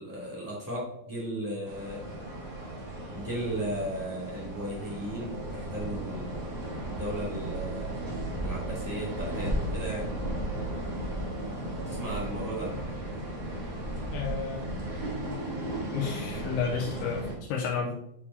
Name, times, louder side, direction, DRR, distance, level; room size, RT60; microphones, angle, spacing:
voice 1, 0.0-2.0 3.1-6.5 6.9-8.0 8.4-10.1 11.8-12.8, equal, 20° right, -8 dB, 0.5 m, -36 dB
sound 1, 1.6-17.3, right 1 dB, 80° right, 1.0 m, -35 dB
voice 2, 14.1-14.6 15.9-17.9, left 6 dB, 85° left, -2 dB, 3.0 m, -31 dB
9.7 x 4.7 x 2.8 m, 0.82 s
omnidirectional pair, 5.4 m